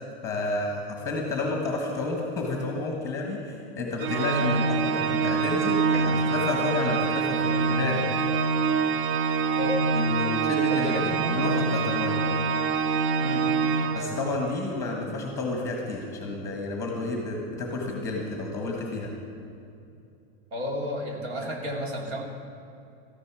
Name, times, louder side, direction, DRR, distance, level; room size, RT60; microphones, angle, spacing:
voice 1, 0.2-8.3 9.9-12.2 13.9-19.1, left 2 dB, 10° left, 0 dB, 1.4 m, -31 dB
Organ, 4.0-14.6, right 5 dB, 35° right, 0.4 m, -25 dB
voice 2, 10.7-11.5 13.2-13.6 20.5-22.2, left 1 dB, 70° right, 1 dB, 2.7 m, -32 dB
13.5 x 11.0 x 6.1 m, 2.6 s
supercardioid pair, 180°, 33 cm